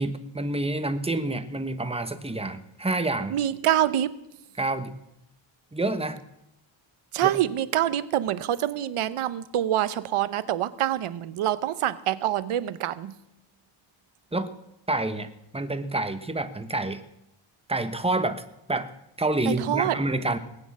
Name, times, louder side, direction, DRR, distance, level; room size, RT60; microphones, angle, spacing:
voice 1, 0.0-3.4 4.6-4.9 5.7-6.2 7.2-7.3 14.3-14.5 14.9-17.0 17.7-18.4 18.7-18.9 19.2-20.4, right 2 dB, 10° right, 9 dB, 1.2 m, -28 dB
voice 2, 3.3-4.1 7.1-13.2 19.4-20.0, right 12 dB, 85° right, 15 dB, 0.9 m, -26 dB
19.0 x 9.0 x 7.3 m, 0.84 s
cardioid pair, 110°, 49 cm